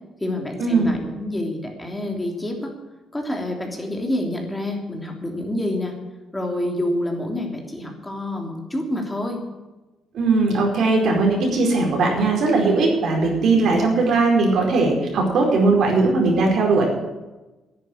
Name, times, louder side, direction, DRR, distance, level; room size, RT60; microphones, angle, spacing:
voice 1, 0.2-2.7 3.1-5.9 6.3-9.4, left 1 dB, 15° left, 1 dB, 3.2 m, -27 dB
voice 2, 10.1-16.9, right 3 dB, 70° right, 0 dB, 4.8 m, -19 dB
10.5 x 9.3 x 9.9 m, 1.1 s
cardioid pair, 90°, 0 cm